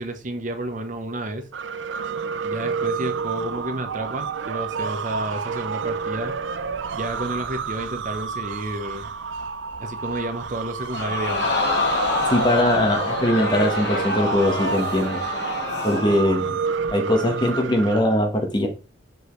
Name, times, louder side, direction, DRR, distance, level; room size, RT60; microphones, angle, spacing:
voice 1, 0.0-1.5 2.4-6.3 6.9-9.0 9.8-11.5, right 1 dB, 40° right, 6 dB, 0.9 m, -30 dB
sound 1, 1.5-18.0, right 5 dB, 85° right, 0.5 m, -30 dB
Crowd, 10.9-16.4 16.8-16.9, left 3 dB, 60° left, 1.5 m, -26 dB
voice 2, 12.3-15.2 15.8-16.6 16.9-18.7, left 1 dB, 25° left, 3 dB, 1.3 m, -21 dB
6.3 x 5.3 x 3.2 m, 0.33 s
head